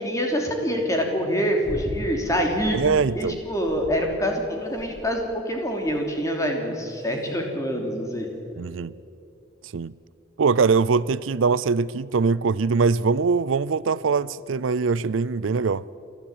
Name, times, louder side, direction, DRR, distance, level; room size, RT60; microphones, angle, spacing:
voice 1, 0.0-2.8 3.1-8.3, equal, 15° left, 3.1 m, -25 dB
sound 1, 1.6-2.1 2.5-3.1 3.6-4.3 4.8-5.2 5.9-6.2 6.9-7.3 8.2-8.3, equal, 25° right, 4.2 m, -37 dB
voice 2, 2.7-3.4 8.6-8.9 9.7-9.9 10.4-15.8, right 4 dB, 85° right, 0.5 m, -22 dB
29.5 x 12.5 x 9.0 m
head